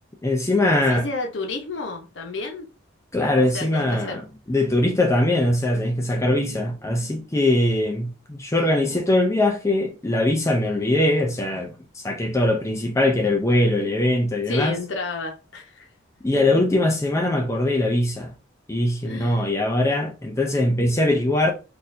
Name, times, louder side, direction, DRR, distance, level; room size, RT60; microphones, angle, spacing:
voice 1, 0.2-1.1 3.1-14.8 16.2-18.3 18.7-21.5, left 1 dB, 15° left, 0.4 m, -21 dB
voice 2, 0.7-2.7 3.5-4.2 8.8-8.9 14.5-15.9 19.0-19.6, left 3 dB, 70° left, 0.9 m, -31 dB
4.1 x 2.6 x 2.6 m
head